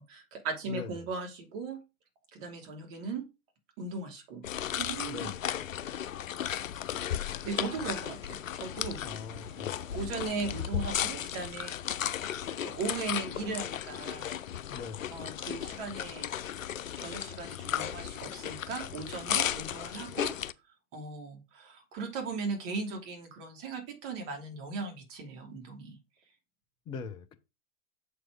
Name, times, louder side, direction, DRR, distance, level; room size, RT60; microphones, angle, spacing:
voice 1, 0.0-1.8 2.3-3.3 3.8-4.4 4.7-5.3 7.4-9.0 9.9-12.0 12.5-14.3 15.1-16.3 17.0-20.3 20.9-26.0, right 4 dB, 40° right, 3.1 m, -38 dB
voice 2, 0.7-1.1 5.1-5.4 9.0-9.9 14.7-15.2 26.9-27.3, left 5 dB, 10° left, 0.4 m, -42 dB
sound 1, 4.4-20.5, left 10 dB, 65° left, 0.6 m, -35 dB
7.4 x 4.7 x 5.0 m
figure-of-eight pair, 100°, 42 cm